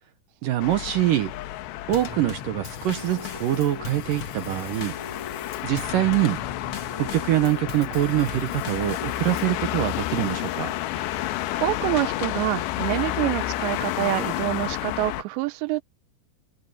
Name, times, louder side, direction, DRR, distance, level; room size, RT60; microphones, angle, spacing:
voice 1, 0.4-1.3 1.9-5.0 5.6-6.4 7.0-10.7, right 14 dB, 75° right, 2.1 m, -24 dB
sound 1, 0.6-15.2, left 15 dB, 85° left, 3.1 m, -31 dB
Drum kit / Snare drum / Bass drum, 1.9-9.6, left 5 dB, 65° left, 1.3 m, -38 dB
voice 2, 11.0-15.8, right 19 dB, 90° right, 3.0 m, -27 dB
omnidirectional pair, 4.9 m